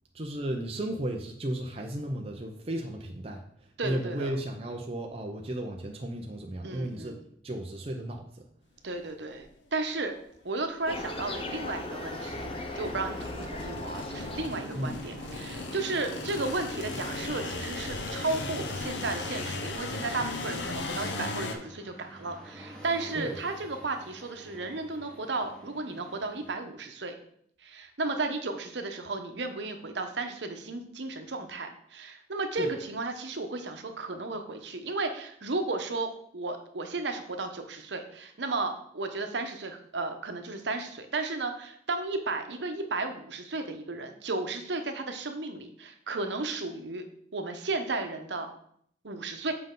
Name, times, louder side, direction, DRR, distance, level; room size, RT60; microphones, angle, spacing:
voice 1, 0.1-8.4 14.7-15.0 23.1-23.4 32.6-32.8, right 1 dB, 35° right, 2 dB, 0.7 m, -35 dB
voice 2, 3.8-4.3 6.6-7.2 8.8-10.1 10.4-12.5 12.7-27.1 27.6-47.0 47.3-48.5 49.0-49.5, right 3 dB, 80° right, 6 dB, 1.0 m, -34 dB
sound 1, 9.3-9.4 10.2-10.3 10.9-11.4 12.2-21.5, left 3 dB, 85° left, 0.9 m, -37 dB
sound 2, 10.9-14.5, left 2 dB, 30° left, 0.6 m, -38 dB
sound 3, 11.9-26.6, right 1 dB, 5° left, 1.5 m, -50 dB
7.8 x 5.2 x 3.8 m, 0.66 s
head